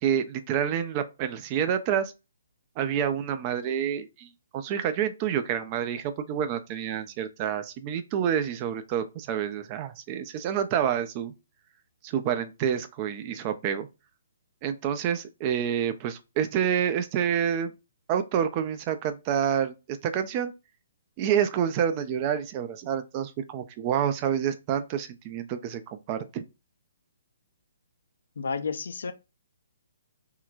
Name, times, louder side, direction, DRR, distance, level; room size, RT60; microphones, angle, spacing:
voice 1, 0.0-2.1 2.8-4.3 4.5-11.3 12.0-13.9 14.6-17.7 18.1-20.5 21.2-26.4, right 9 dB, 30° right, 0.4 m, -28 dB
voice 2, 28.4-29.1, left 5 dB, 60° left, 0.4 m, -31 dB
3.7 x 2.1 x 2.4 m
figure-of-eight pair, 130°, 0 cm